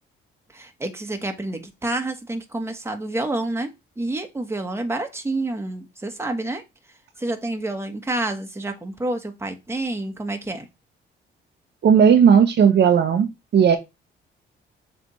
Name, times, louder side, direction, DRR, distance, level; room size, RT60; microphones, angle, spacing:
voice 1, 0.5-6.6 7.2-10.7, right 2 dB, 10° right, 1.4 m, -28 dB
voice 2, 11.8-13.8, right 7 dB, 60° right, 1.0 m, -15 dB
7.2 x 3.4 x 4.3 m
cardioid pair, 90°, 20 cm